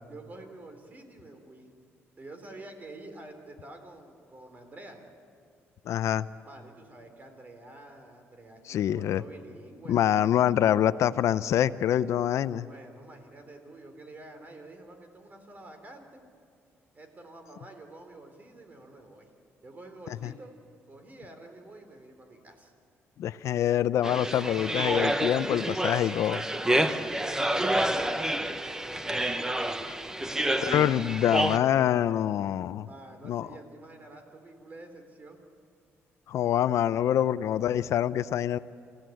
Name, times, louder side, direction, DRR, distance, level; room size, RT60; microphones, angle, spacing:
voice 1, 0.1-1.7 2.2-5.0 6.4-10.5 12.6-16.2 16.9-19.3 19.6-20.5 20.9-22.7 26.5-29.4 30.2-31.3 32.8-35.4, right 2 dB, 35° right, 6 dB, 3.6 m, -48 dB
voice 2, 5.9-6.3 8.7-9.2 9.9-12.7 23.2-26.4 29.8-30.0 30.6-32.9 33.3-33.5 36.3-38.6, left 11 dB, 75° left, 15 dB, 0.6 m, -25 dB
sound 1, 24.0-31.6, right 1 dB, 10° right, 1.0 m, -28 dB
28.0 x 16.0 x 9.2 m, 2.3 s
cardioid pair, 115°, 5 cm